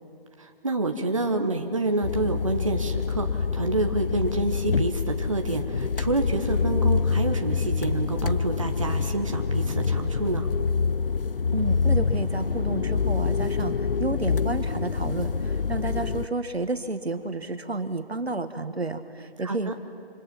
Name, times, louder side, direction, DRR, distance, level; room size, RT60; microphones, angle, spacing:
voice 1, 0.4-10.5 19.4-19.7, right 2 dB, 30° right, 5 dB, 1.1 m, -28 dB
sound 1, 2.0-16.3, left 5 dB, 60° left, 0.6 m, -26 dB
voice 2, 11.5-19.8, right 2 dB, 80° right, 9 dB, 1.7 m, -31 dB
27.5 x 25.0 x 6.0 m, 2.5 s
figure-of-eight pair, 165°, 31 cm